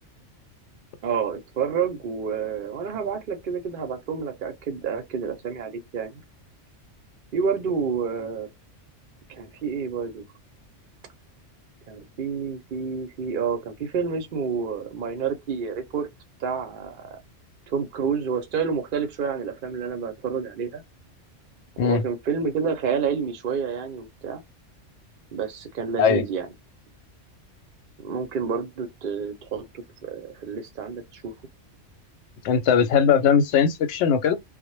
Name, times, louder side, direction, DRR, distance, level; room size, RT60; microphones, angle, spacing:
voice 1, 1.0-6.2 7.3-8.5 9.3-10.2 11.9-16.1 16.4-17.2 17.7-20.8 21.8-24.4 25.3-26.5 28.0-31.3, right 6 dB, 55° right, 0.6 m, -29 dB
voice 2, 32.4-34.3, left 7 dB, 70° left, 0.8 m, -19 dB
2.0 x 2.0 x 3.0 m
omnidirectional pair, 1.3 m